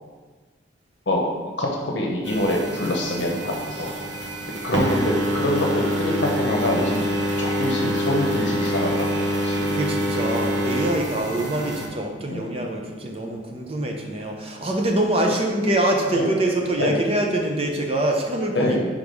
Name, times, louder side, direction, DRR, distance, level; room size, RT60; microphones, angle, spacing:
voice 1, 1.6-3.9 4.6-7.1 7.4-9.7 12.3-12.5 15.3-15.4 16.1-16.4 16.8-16.9 18.5-18.9, left 1 dB, 70° left, 0 dB, 0.8 m, -25 dB
sound 1, 2.2-11.9, equal, 90° right, 1.1 m, -26 dB
voice 2, 9.7-18.9, right 1 dB, 30° right, 1 dB, 0.7 m, -24 dB
5.3 x 3.5 x 5.2 m, 1.4 s
head